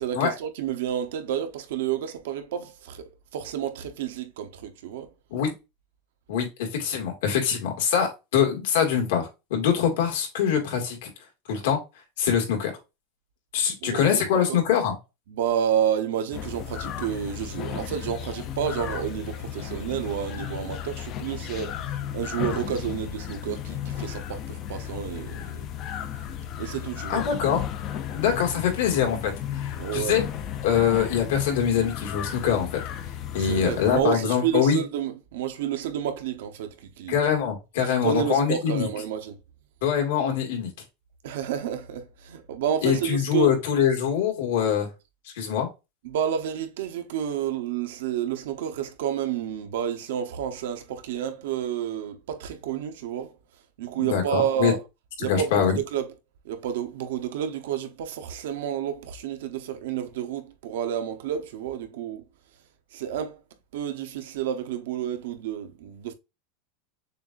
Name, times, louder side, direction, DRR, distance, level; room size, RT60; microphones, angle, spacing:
voice 1, 0.0-5.1 13.8-14.6 15.3-21.8 22.1-25.7 26.6-27.2 29.8-30.2 33.3-37.2 38.0-39.4 41.2-43.5 46.0-53.4 53.8-54.8 55.2-56.1 56.4-62.2 62.9-63.4 63.7-66.1, right 9 dB, 70° right, 0.7 m, -30 dB
voice 2, 6.3-11.1 11.5-11.8 12.2-12.7 13.5-14.9 27.1-27.6 28.1-30.2 30.6-32.8 33.3-34.8 37.1-38.9 39.8-40.7 42.8-44.9 45.3-45.7 54.0-54.7 55.3-55.8, left 8 dB, 75° left, 1.8 m, -24 dB
sound 1, 16.3-34.0, left 10 dB, 30° left, 0.4 m, -34 dB
6.7 x 2.4 x 2.4 m
supercardioid pair, 180°, 0 cm